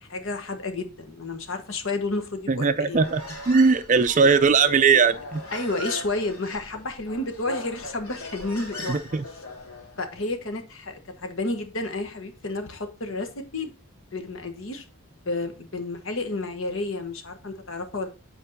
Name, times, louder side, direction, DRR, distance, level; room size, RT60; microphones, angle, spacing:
voice 1, 0.1-3.0 5.5-9.0 10.0-13.7 14.1-14.9 15.2-18.1, left 2 dB, 60° left, 1.2 m, -31 dB
voice 2, 2.5-3.2 3.5-5.4 8.9-9.2, right 5 dB, 35° right, 0.4 m, -19 dB
Human voice, 2.9-10.0, left 1 dB, 80° left, 3.1 m, -38 dB
7.9 x 4.6 x 4.1 m
head